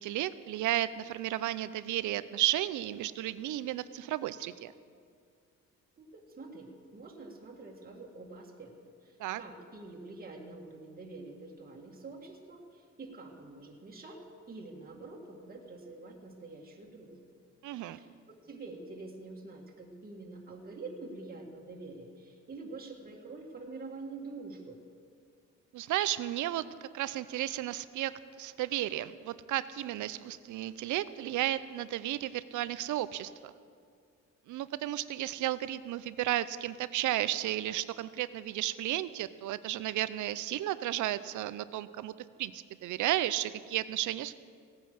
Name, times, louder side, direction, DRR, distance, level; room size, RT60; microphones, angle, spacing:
voice 1, 0.0-4.7 9.2-9.4 17.6-18.0 25.7-33.5 34.5-42.1 42.4-44.4, right 14 dB, 80° right, 15 dB, 0.6 m, -33 dB
voice 2, 6.0-8.7 9.0-17.2 17.7-24.8, right 3 dB, 30° right, -1 dB, 1.9 m, -46 dB
16.5 x 9.3 x 6.3 m, 2.2 s
cardioid pair, 90°, 30 cm